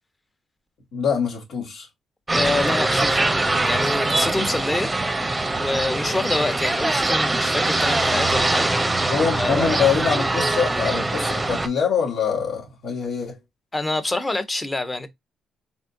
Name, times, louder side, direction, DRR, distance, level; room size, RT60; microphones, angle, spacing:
voice 1, 0.9-1.9 9.1-13.4, left 6 dB, 70° left, 1.7 m, -24 dB
voice 2, 2.3-3.2 3.6-4.9 5.6-8.9 9.4-10.1 13.7-15.1, left 2 dB, 15° left, 1.0 m, -26 dB
sound 1, 2.3-11.7, right 2 dB, 15° right, 0.8 m, -22 dB
4.2 x 3.5 x 2.6 m
cardioid pair, 90°, 0 cm